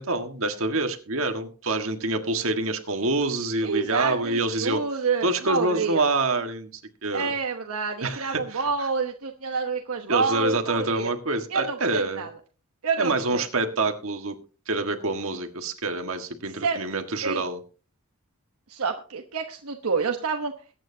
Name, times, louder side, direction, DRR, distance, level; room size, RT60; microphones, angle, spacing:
voice 1, 0.0-4.8 5.2-6.7 7.0-7.3 8.0-8.6 10.1-12.2 13.0-14.4 14.7-17.6, right 2 dB, 65° right, 5 dB, 1.6 m, -26 dB
voice 2, 3.6-6.1 7.1-11.1 11.5-12.3 12.8-13.4 16.6-16.8 17.2-17.4 18.7-20.5, right 5 dB, 80° right, 3 dB, 1.1 m, -28 dB
22.0 x 9.1 x 2.8 m, 0.37 s
head